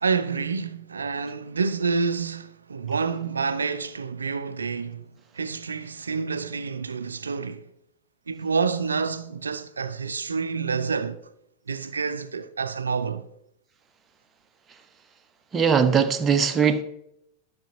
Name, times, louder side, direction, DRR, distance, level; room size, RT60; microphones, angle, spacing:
voice 1, 0.0-5.0 5.3-7.7 8.3-11.2 11.7-13.2, right 5 dB, 75° right, 0.5 m, -28 dB
voice 2, 15.5-16.8, right 6 dB, 20° right, 0.8 m, -20 dB
13.0 x 6.6 x 2.7 m
figure-of-eight pair, 90°, 0 cm